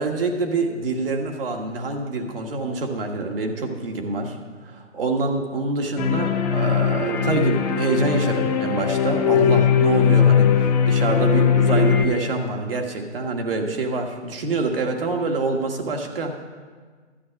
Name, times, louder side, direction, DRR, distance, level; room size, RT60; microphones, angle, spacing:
voice 1, 0.0-4.4 4.6-16.3, right 3 dB, 50° right, 3 dB, 1.8 m, -26 dB
sound 1, 6.0-12.0, left 7 dB, 30° left, 1.1 m, -19 dB
12.0 x 9.1 x 5.9 m, 1.5 s
figure-of-eight pair, 145°, 37 cm